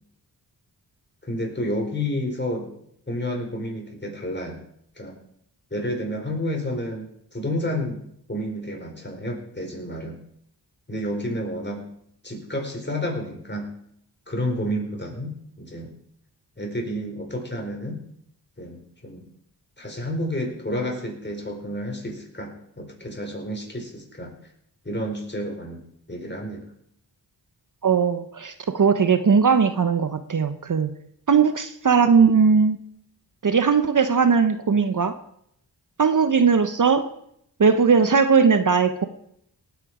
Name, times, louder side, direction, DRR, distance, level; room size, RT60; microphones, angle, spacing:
voice 1, 1.2-2.7 3.1-4.6 5.0-5.2 5.7-8.0 8.3-10.2 10.9-11.9 12.2-13.7 14.3-15.9 16.6-18.0 18.6-19.2 19.8-24.3 24.8-25.8 26.1-26.7, left 1 dB, 25° left, 1 dB, 4.7 m, -30 dB
voice 2, 27.8-30.9 31.3-32.8 33.4-35.2 36.0-37.0 37.6-39.0, right 6 dB, 45° right, 11 dB, 0.9 m, -19 dB
18.5 x 8.3 x 5.0 m, 0.72 s
cardioid pair, 50°, 42 cm